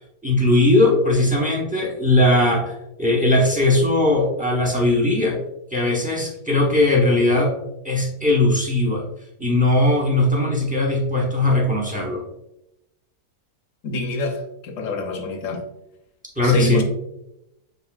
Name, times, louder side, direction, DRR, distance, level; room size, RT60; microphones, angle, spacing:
voice 1, 0.2-5.4 5.7-7.5 7.8-9.0 9.4-12.2 16.4-16.8, left 2 dB, 10° right, -2 dB, 0.4 m, -19 dB
voice 2, 13.8-15.6 16.4-16.8, left 2 dB, 60° left, 4 dB, 1.0 m, -26 dB
7.6 x 2.7 x 2.3 m, 0.85 s
omnidirectional pair, 1.8 m